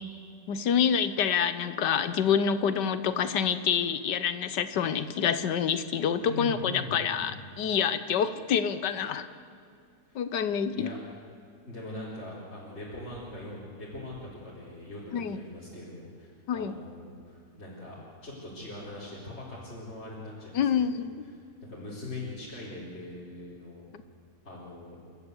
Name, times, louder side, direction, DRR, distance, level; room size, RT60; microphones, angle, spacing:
voice 1, 0.5-9.3 10.1-10.9 15.1-15.4 16.5-16.8 20.5-21.1, left 7 dB, 75° left, 12 dB, 1.6 m, -27 dB
voice 2, 6.2-7.6 10.8-11.0 11.7-18.0 18.2-21.0 21.7-23.8 24.4-25.0, left 2 dB, 35° left, -8 dB, 4.6 m, -41 dB
28.5 x 13.5 x 8.3 m, 2.4 s
omnidirectional pair, 1.9 m